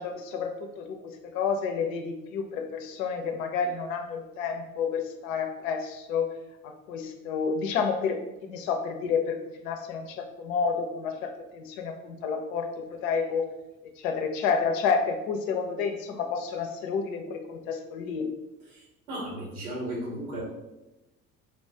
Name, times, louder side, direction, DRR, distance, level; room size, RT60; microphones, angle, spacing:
voice 1, 0.0-6.3 6.6-8.2 8.5-13.4 14.0-18.3, left 5 dB, 65° left, 5 dB, 0.6 m, -30 dB
voice 2, 18.6-20.4, right 1 dB, 80° right, -5 dB, 1.3 m, -35 dB
4.0 x 2.3 x 2.7 m, 0.98 s
figure-of-eight pair, 55°, 43 cm